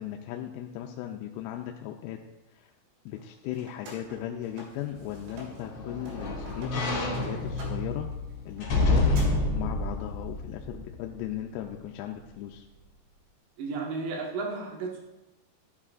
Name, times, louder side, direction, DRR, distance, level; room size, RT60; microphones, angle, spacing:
voice 1, 0.0-2.2 2.5-2.7 3.1-8.1 8.5-12.6, left 11 dB, 90° left, 3 dB, 3.3 m, -37 dB
sound 1, 3.1-5.7 5.9-9.2, right 1 dB, 65° right, 5.0 m, -49 dB
sound 2, 5.0-11.3 11.8-11.9, left 2 dB, 60° left, 1.8 m, -29 dB
voice 2, 13.6-15.0, right 4 dB, 85° right, -1 dB, 4.3 m, -33 dB
12.0 x 9.9 x 2.4 m, 1.0 s
omnidirectional pair, 5.9 m